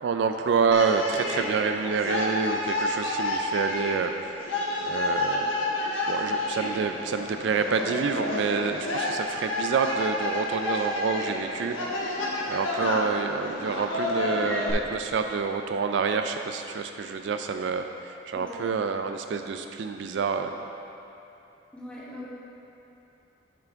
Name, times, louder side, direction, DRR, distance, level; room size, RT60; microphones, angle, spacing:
voice 1, 0.0-4.5 4.8-5.5 6.1-12.2 12.5-20.5, right 5 dB, 70° right, 6 dB, 0.3 m, -28 dB
sound 1, 0.7-14.7, left 2 dB, 90° left, 1.2 m, -30 dB
voice 2, 18.3-18.8 21.7-22.3, left 1 dB, 5° left, -8 dB, 1.2 m, -41 dB
8.9 x 5.6 x 3.5 m, 2.9 s
head